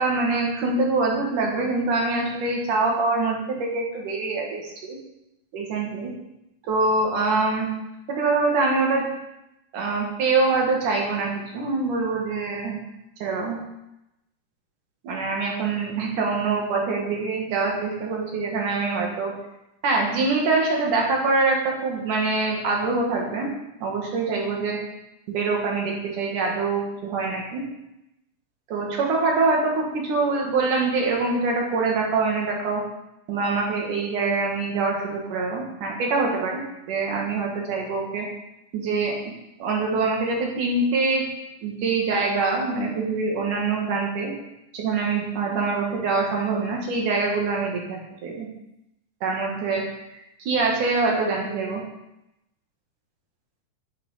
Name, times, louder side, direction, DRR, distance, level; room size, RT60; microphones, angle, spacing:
voice 1, 0.0-5.0 5.5-6.1 6.7-7.7 8.1-9.0 9.7-12.8 13.2-13.6 15.0-19.3 19.8-23.5 23.8-24.8 25.3-27.6 28.7-32.8 33.3-38.3 38.7-39.2 39.6-41.2 41.6-44.3 44.7-48.5 49.2-49.8 50.5-51.8, right 3 dB, 75° right, -1 dB, 3.4 m, -24 dB
8.8 x 8.8 x 5.6 m, 0.89 s
omnidirectional pair, 3.7 m